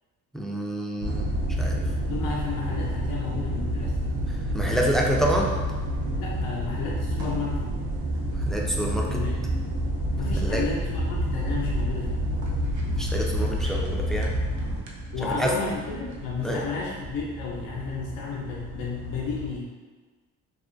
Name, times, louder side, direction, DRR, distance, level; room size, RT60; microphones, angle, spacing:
voice 1, 0.3-1.3 1.6-1.8 4.5-5.5 8.5-9.1 10.4-10.6 13.0-14.3 15.4-15.5 16.4-16.6, right 1 dB, ahead, -2 dB, 0.3 m, -27 dB
sound 1, 1.0-19.5, equal, 80° right, 0.6 m, -29 dB
voice 2, 2.1-4.0 6.2-7.6 9.1-9.5 10.2-12.2 15.1-19.7, left 5 dB, 75° left, -3 dB, 0.5 m, -32 dB
2.3 x 2.1 x 2.5 m, 1.4 s
supercardioid pair, 70°, 35 cm